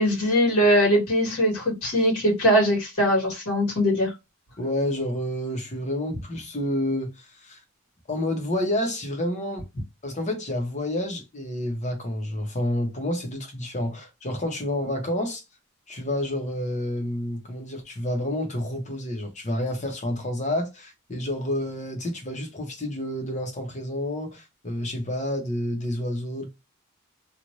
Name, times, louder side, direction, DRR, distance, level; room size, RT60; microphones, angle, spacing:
voice 1, 0.0-4.1, equal, 85° left, 1.6 m, -21 dB
voice 2, 4.6-7.6 8.1-9.7 10.0-15.4 15.9-26.5, left 1 dB, 35° left, 1.0 m, -29 dB
3.1 x 2.5 x 2.6 m
head